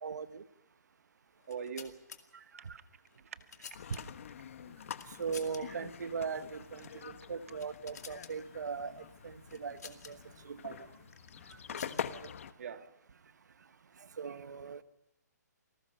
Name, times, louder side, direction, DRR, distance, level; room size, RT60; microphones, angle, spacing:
voice 1, 0.0-0.4 5.2-8.9 9.2-9.3 9.6-10.2 10.5-10.8 14.2-14.8, right 5 dB, 70° right, 1.3 m, -39 dB
sound 1, 1.4-2.2 3.1-4.3 4.9-5.6 5.9-6.0 6.7-7.0 7.4-8.3 9.5-10.1 11.1-12.3, left 6 dB, 60° left, 2.3 m, -51 dB
voice 2, 1.5-2.0 2.7-2.8 3.2-3.4 11.7-12.0 12.6-12.9, right 6 dB, 50° right, 1.7 m, -43 dB
sound 2, 3.7-12.5, left 8 dB, 45° left, 1.1 m, -45 dB
28.5 x 19.0 x 5.6 m
hypercardioid pair, 165°, 10 cm